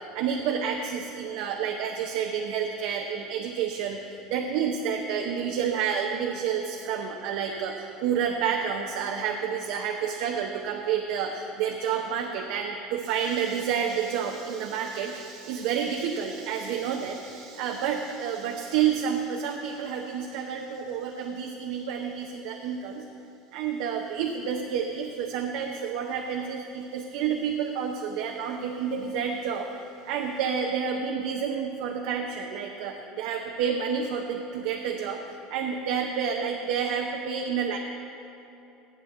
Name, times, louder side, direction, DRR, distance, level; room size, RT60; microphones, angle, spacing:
voice 1, 0.0-23.1 23.5-37.8, right 7 dB, 70° right, 1 dB, 0.7 m, -29 dB
8.2 x 7.7 x 7.7 m, 2.9 s
hypercardioid pair, 85°, 0 cm